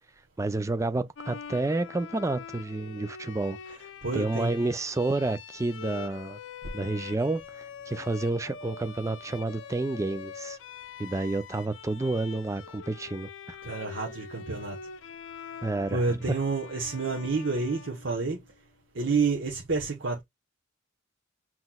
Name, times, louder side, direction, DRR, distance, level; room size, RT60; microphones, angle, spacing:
voice 1, 0.4-3.6 4.1-6.4 6.7-10.6 11.0-13.6 15.6-16.0 16.3-16.4, right 2 dB, 15° right, 0.3 m, -30 dB
Bowed string instrument, 1.2-18.6, left 6 dB, 80° left, 0.5 m, -44 dB
voice 2, 4.0-4.5 13.6-14.8 15.9-18.4 18.9-20.2, right 4 dB, 70° right, 0.9 m, -29 dB
5.9 x 3.0 x 2.2 m
head